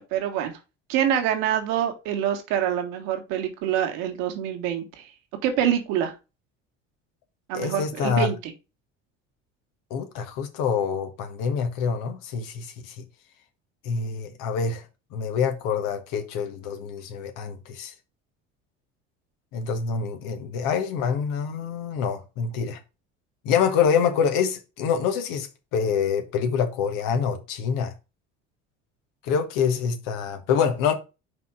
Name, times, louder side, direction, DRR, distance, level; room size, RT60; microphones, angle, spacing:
voice 1, 0.1-0.5 0.9-5.1 5.4-6.1 7.5-8.5, right 10 dB, 70° right, 1.8 m, -26 dB
voice 2, 7.5-8.3 9.9-13.0 13.8-14.8 15.1-17.9 19.5-22.8 23.4-27.9 29.2-30.9, left 6 dB, 65° left, 1.6 m, -26 dB
5.3 x 4.3 x 4.8 m
hypercardioid pair, 65°, 35 cm